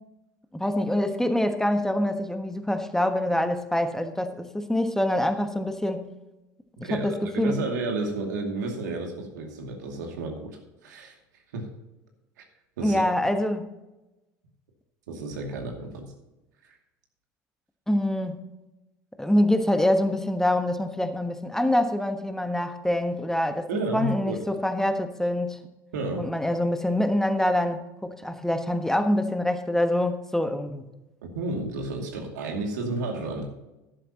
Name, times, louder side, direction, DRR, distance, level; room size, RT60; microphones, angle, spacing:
voice 1, 0.5-6.1 6.8-7.6 12.8-13.7 17.9-18.4 19.2-25.6 26.2-30.8, left 1 dB, 5° left, 7 dB, 1.2 m, -25 dB
voice 2, 6.8-11.2 11.5-11.7 12.8-13.0 15.1-16.1 16.7-16.8 23.7-24.4 25.9-26.3 31.3-33.5, right 2 dB, 75° right, 2 dB, 2.4 m, -31 dB
13.0 x 11.5 x 2.9 m, 1.0 s
hypercardioid pair, 65°, 10 cm